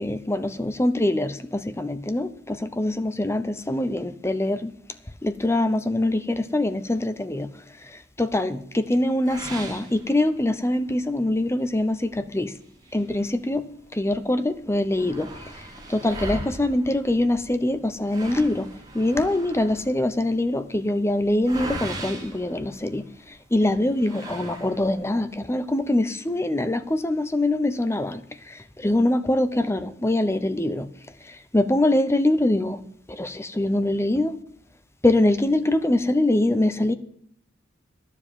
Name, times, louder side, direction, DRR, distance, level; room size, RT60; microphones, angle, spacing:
voice 1, 0.0-4.7 5.2-7.5 8.2-12.5 12.9-13.7 13.9-15.3 15.9-18.7 18.9-23.0 23.5-28.2 28.8-30.9 31.5-32.8 33.1-34.3 35.0-36.9, left 1 dB, 15° left, 0.8 m, -23 dB
sound 1, 9.2-10.7 11.1-11.2 11.7-11.8 12.6-13.9 14.2-14.3 14.5-23.3 24.0-25.1, right 2 dB, 20° right, 3.1 m, -39 dB
11.5 x 7.4 x 8.6 m
head